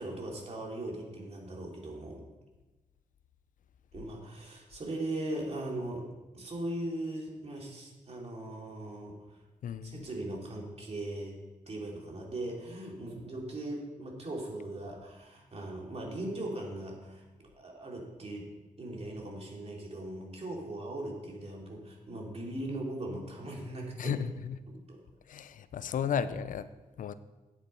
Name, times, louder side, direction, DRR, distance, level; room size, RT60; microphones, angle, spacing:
voice 1, 0.0-2.2 3.9-6.1 6.3-9.4 9.8-11.4 11.7-17.3 17.5-18.5 18.8-24.2 24.7-25.0, right 1 dB, 50° right, -1 dB, 2.8 m, -39 dB
voice 2, 9.6-10.1 24.0-24.6 25.3-26.7 27.0-27.1, left 7 dB, 75° left, 13 dB, 0.5 m, -34 dB
9.3 x 8.5 x 4.4 m, 1.1 s
cardioid pair, 65°, 14 cm